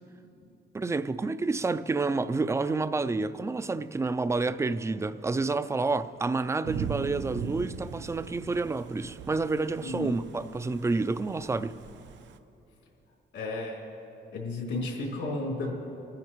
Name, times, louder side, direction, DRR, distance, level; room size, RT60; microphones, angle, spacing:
voice 1, 0.7-11.8, right 3 dB, 15° right, 0.3 m, -29 dB
Thunder / Rain, 6.6-12.4, right 6 dB, 75° right, 0.7 m, -39 dB
voice 2, 9.8-10.2 13.3-13.8 14.3-15.7, left 2 dB, 85° left, 3.6 m, -33 dB
26.0 x 14.5 x 3.1 m
cardioid pair, 135°, 19 cm